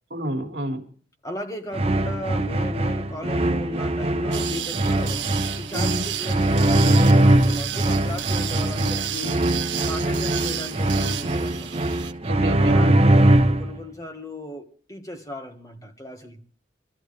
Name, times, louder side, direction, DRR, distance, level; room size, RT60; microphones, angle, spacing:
voice 1, 0.1-0.8 5.7-6.1 10.1-10.2 12.2-13.0, equal, 70° right, 2.0 m, -29 dB
voice 2, 1.2-5.3 5.5-9.5 9.8-11.9 12.4-16.4, left 1 dB, 20° left, 1.6 m, -36 dB
sound 1, 1.7-13.8, right 1 dB, 35° right, 0.8 m, -21 dB
sound 2, 4.3-12.1, right 11 dB, 85° right, 1.4 m, -32 dB
23.0 x 13.5 x 3.3 m
head